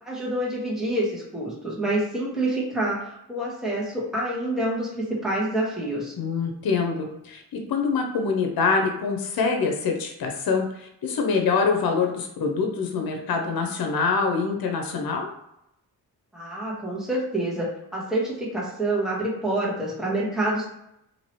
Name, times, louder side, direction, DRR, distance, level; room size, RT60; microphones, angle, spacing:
voice 1, 0.0-6.1 16.3-20.7, right 1 dB, ahead, -6 dB, 1.3 m, -27 dB
voice 2, 6.2-15.3, left 4 dB, 65° left, 3 dB, 0.7 m, -25 dB
2.8 x 2.7 x 3.0 m, 0.82 s
cardioid pair, 65°, 38 cm